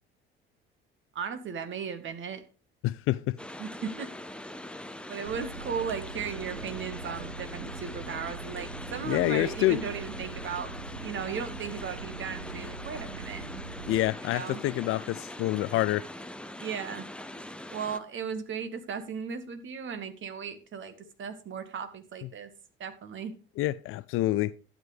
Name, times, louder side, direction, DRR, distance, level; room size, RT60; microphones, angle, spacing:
voice 1, 1.2-2.4 3.6-4.1 5.1-10.7 11.0-13.4 14.3-14.6 16.6-17.1 17.7-22.5 22.8-23.4, right 6 dB, 40° right, 1.7 m, -36 dB
voice 2, 2.8-3.3 9.0-9.8 13.9-16.0 23.6-24.5, left 16 dB, 50° left, 0.5 m, -27 dB
sound 1, 3.4-18.0, left 1 dB, 5° left, 0.8 m, -42 dB
sound 2, 5.2-14.0, right 4 dB, 80° right, 0.9 m, -42 dB
12.0 x 9.0 x 3.3 m
figure-of-eight pair, 55°, 29 cm